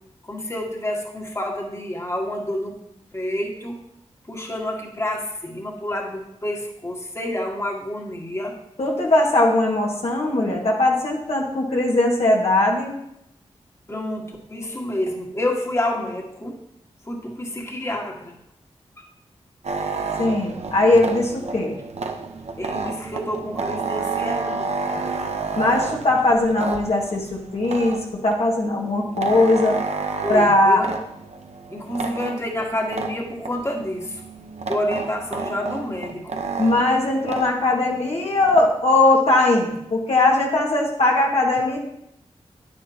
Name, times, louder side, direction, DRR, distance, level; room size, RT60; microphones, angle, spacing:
voice 1, 0.2-2.8 3.1-3.8 4.3-8.6 13.9-16.6 17.1-18.3 22.6-25.1 30.2-30.9 31.7-34.2 34.7-36.4, left 1 dB, 25° left, 0 dB, 1.7 m, -28 dB
voice 2, 8.8-13.0 20.2-21.8 25.5-27.3 27.5-29.8 30.3-30.8 36.6-41.8, left 2 dB, 65° left, -2 dB, 1.7 m, -19 dB
sound 1, 19.6-28.4 28.8-38.7, right 4 dB, 70° right, 0.8 m, -30 dB
9.7 x 9.5 x 2.8 m, 0.79 s
cardioid pair, 45°, 11 cm